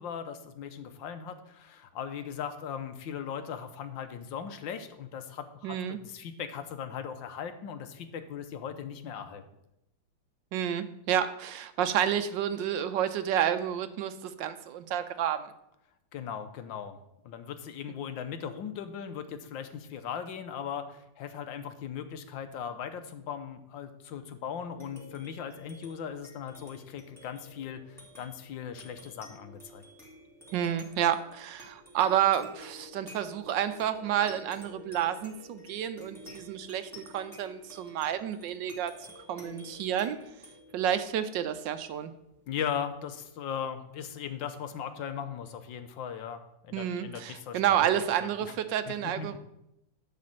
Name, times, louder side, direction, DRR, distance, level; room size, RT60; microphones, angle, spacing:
voice 1, 0.0-9.4 16.1-17.0 17.2-29.8 42.5-47.9 48.2-48.5 48.9-49.3, left 8 dB, 80° left, 9 dB, 1.6 m, -38 dB
voice 2, 5.6-6.0 10.5-15.5 30.5-38.9 39.3-40.2 40.7-42.1 46.7-49.4, right 10 dB, 80° right, 11 dB, 1.3 m, -30 dB
sound 1, 24.6-43.4, left 1 dB, ahead, 3.0 m, -52 dB
11.5 x 4.2 x 7.5 m, 0.83 s
omnidirectional pair, 2.0 m